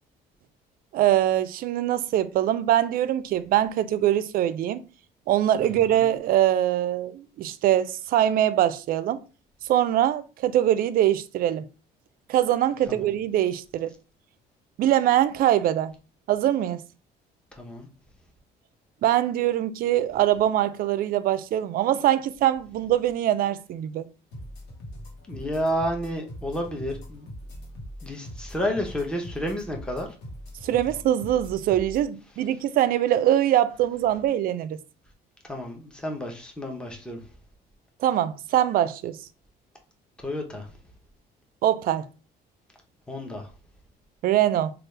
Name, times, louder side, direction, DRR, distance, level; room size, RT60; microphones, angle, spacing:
voice 1, 0.9-4.8 5.3-9.2 9.7-11.7 12.3-13.9 14.8-15.9 16.3-16.8 19.0-24.0 30.6-34.8 38.0-39.2 41.6-42.1 44.2-44.7, right 12 dB, 60° right, 0.4 m, -23 dB
sound 1, 24.3-32.1, equal, 90° left, 1.1 m, -41 dB
voice 2, 25.3-27.3 28.0-30.1 35.5-37.2 40.2-40.7 43.1-43.5, equal, 5° left, 0.7 m, -30 dB
3.2 x 2.4 x 3.2 m
cardioid pair, 110°, 17 cm